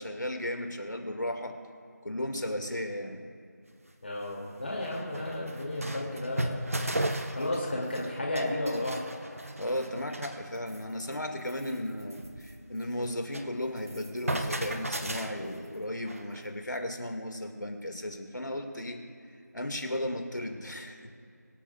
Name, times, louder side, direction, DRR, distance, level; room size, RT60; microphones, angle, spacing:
voice 1, 0.0-1.6 2.0-3.2 9.6-19.0 19.5-21.1, left 1 dB, 85° left, 5 dB, 1.9 m, -35 dB
sound 1, 3.7-3.8 4.3-4.4 4.6-8.1 8.4-10.4 10.7-10.9 11.1-11.2 11.5-13.5 13.8-16.5, right 1 dB, 50° right, 0.9 m, -36 dB
voice 2, 4.0-6.7 7.3-9.1, left 1 dB, 40° left, -2 dB, 2.4 m, -33 dB
24.5 x 8.8 x 2.3 m, 2.5 s
figure-of-eight pair, 170°, 10 cm